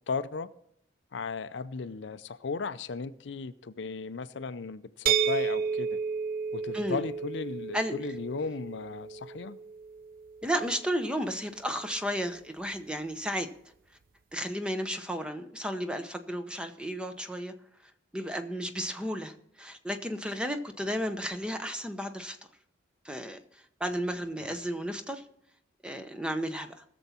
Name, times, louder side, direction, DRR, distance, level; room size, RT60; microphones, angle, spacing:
voice 1, 0.1-0.5 1.1-6.0 6.5-9.6, left 4 dB, 65° left, 13 dB, 0.5 m, -36 dB
sound 1, 5.1-10.8, right 7 dB, 45° right, 0.4 m, -32 dB
voice 2, 10.4-13.5 14.3-17.5 17.8-22.4 23.0-25.2 25.8-26.8, equal, 5° right, 7 dB, 0.8 m, -33 dB
20.0 x 7.1 x 4.3 m, 0.74 s
head